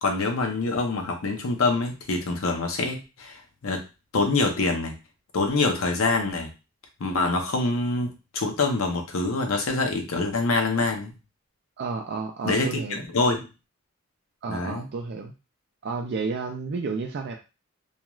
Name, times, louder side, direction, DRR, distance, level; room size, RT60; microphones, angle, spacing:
voice 1, 0.0-3.8 4.1-4.9 5.3-6.5 7.0-11.1 12.4-13.5 14.5-14.9, left 3 dB, 85° left, 3 dB, 0.7 m, -25 dB
voice 2, 11.8-13.0 14.4-15.3 15.8-17.4, right 4 dB, 55° right, 3 dB, 0.4 m, -31 dB
2.3 x 2.3 x 3.0 m, 0.29 s
head